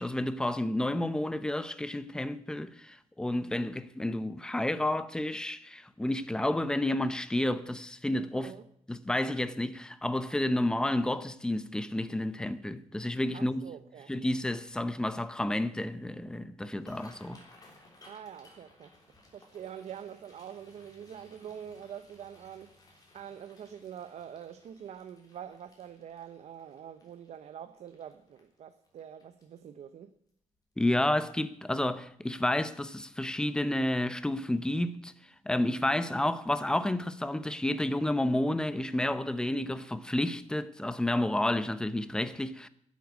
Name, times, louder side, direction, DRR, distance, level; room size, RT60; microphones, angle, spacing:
voice 1, 0.0-8.5 8.9-13.7 14.1-17.4 30.8-35.1 35.4-42.7, left 1 dB, 5° left, 0.7 m, -30 dB
voice 2, 8.3-8.6 13.3-14.1 18.1-18.9 19.3-22.7 23.1-30.1, right 9 dB, 60° right, 0.7 m, -45 dB
sound 1, 16.7-29.8 30.3-30.6 30.9-31.3 31.7-31.9 33.1-33.3 33.6-33.8 34.2-34.3, left 2 dB, 30° left, 3.4 m, -60 dB
11.0 x 8.4 x 9.4 m
wide cardioid pair, 155°, 13 cm